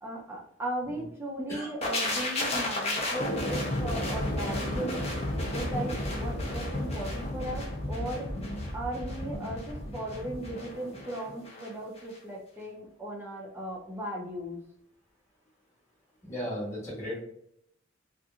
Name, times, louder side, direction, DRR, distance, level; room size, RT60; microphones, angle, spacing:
voice 1, 0.0-5.0 5.4-8.3 8.7-14.6, right 1 dB, 10° right, -1 dB, 0.5 m, -37 dB
sound 1, 1.8-11.7 12.0-12.2, left 1 dB, 30° left, 0.6 m, -32 dB
voice 2, 16.3-17.2, equal, 15° left, -6 dB, 1.0 m, -35 dB
2.8 x 2.5 x 2.4 m, 0.72 s
head